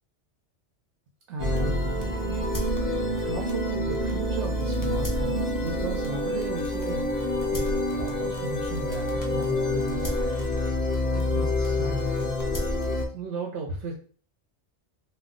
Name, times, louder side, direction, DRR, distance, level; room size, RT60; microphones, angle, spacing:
voice 1, 1.3-1.8 3.0-10.5 11.1-12.3 13.1-13.9, right 3 dB, 85° right, -1 dB, 0.9 m, -36 dB
sound 1, 1.4-13.1, left 1 dB, 25° left, 0.4 m, -27 dB
2.3 x 2.1 x 3.6 m, 0.42 s
omnidirectional pair, 1.2 m